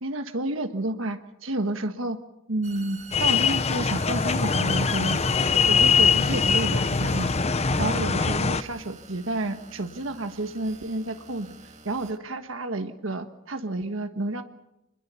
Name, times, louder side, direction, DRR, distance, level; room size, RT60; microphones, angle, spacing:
voice 1, 0.0-2.2 2.5-5.2 5.6-7.3 7.8-11.5 11.8-14.4, right 2 dB, 70° right, 8 dB, 1.4 m, -30 dB
sound 1, 2.6-12.2, right 5 dB, 35° right, 1.7 m, -46 dB
sound 2, 3.1-8.6, left 5 dB, 30° left, 0.8 m, -22 dB
26.5 x 21.0 x 7.0 m, 0.91 s
head